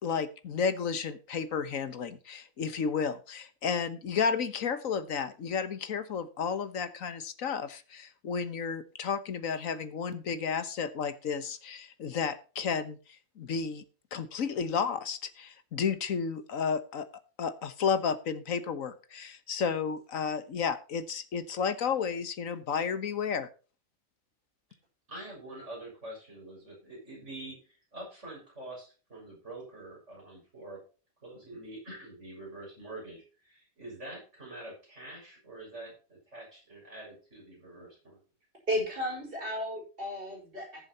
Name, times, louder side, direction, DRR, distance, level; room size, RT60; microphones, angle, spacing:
voice 1, 0.0-13.8 14.1-17.1 17.4-23.5, left 6 dB, 75° left, 12 dB, 1.5 m, -32 dB
voice 2, 25.1-30.8 31.2-38.2, right 1 dB, 55° right, -3 dB, 7.0 m, -45 dB
voice 3, 38.7-40.9, equal, 40° right, -1 dB, 5.6 m, -34 dB
18.5 x 7.2 x 2.9 m, 0.35 s
omnidirectional pair, 1.4 m